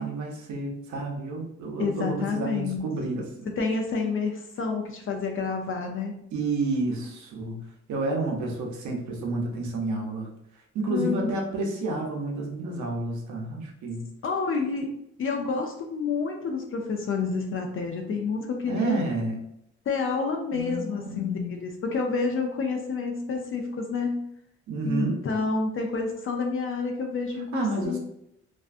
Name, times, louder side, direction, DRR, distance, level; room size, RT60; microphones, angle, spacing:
voice 1, 0.0-3.5 6.3-7.6 7.9-10.3 10.7-14.0 18.7-19.4 20.5-21.6 24.7-25.2 27.5-28.0, right 2 dB, 75° right, 1 dB, 0.7 m, -30 dB
voice 2, 1.8-2.8 3.5-6.2 10.9-11.3 14.2-14.9 15.2-19.0 19.9-24.2 24.8-28.0, left 4 dB, 45° left, 2 dB, 0.4 m, -29 dB
2.5 x 2.3 x 2.4 m, 0.77 s
cardioid pair, 80°, 29 cm